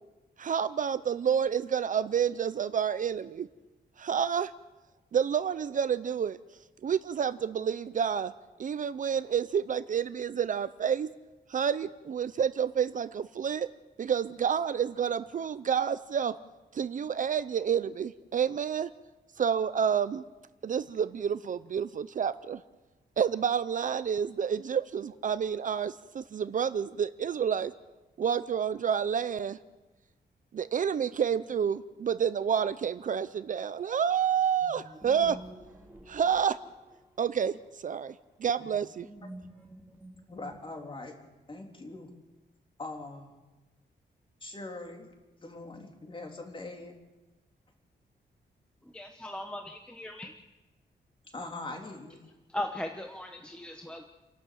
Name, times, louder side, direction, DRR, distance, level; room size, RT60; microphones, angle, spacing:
voice 1, 0.4-3.5 4.0-4.5 5.1-6.4 6.8-8.3 8.6-11.1 11.5-13.7 14.0-16.4 16.7-18.9 19.4-20.2 20.6-22.6 23.2-27.7 28.2-29.6 30.5-35.4 36.1-36.6 37.2-37.6 37.8-38.1 38.4-39.1, right 7 dB, 45° right, 14 dB, 0.6 m, -29 dB
sound 1, 34.6-37.2 38.6-41.0, right 1 dB, 10° right, 4.0 m, -49 dB
voice 2, 40.3-41.1 41.5-42.1 42.8-43.3 44.4-45.1 45.4-46.9 51.3-52.2, left 2 dB, 30° left, 2 dB, 3.3 m, -41 dB
voice 3, 48.9-50.3 52.5-54.0, left 1 dB, 5° left, 3 dB, 1.1 m, -38 dB
30.0 x 12.0 x 7.6 m, 1.2 s
wide cardioid pair, 175°, 18 cm